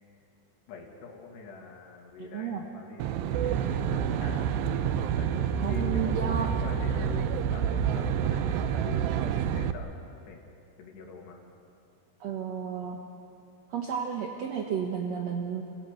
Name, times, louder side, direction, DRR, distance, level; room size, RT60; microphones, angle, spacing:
voice 1, 0.7-4.5 5.2-10.4 10.8-11.4, left 4 dB, 85° left, 1 dB, 4.6 m, -44 dB
voice 2, 2.2-2.6 5.6-6.5 12.2-13.0 13.7-15.6, right 8 dB, 70° right, 2 dB, 1.6 m, -32 dB
Aircraft, 3.0-9.7, right 8 dB, 85° right, 2.9 m, -28 dB
29.0 x 15.5 x 8.3 m, 2.6 s
omnidirectional pair, 4.8 m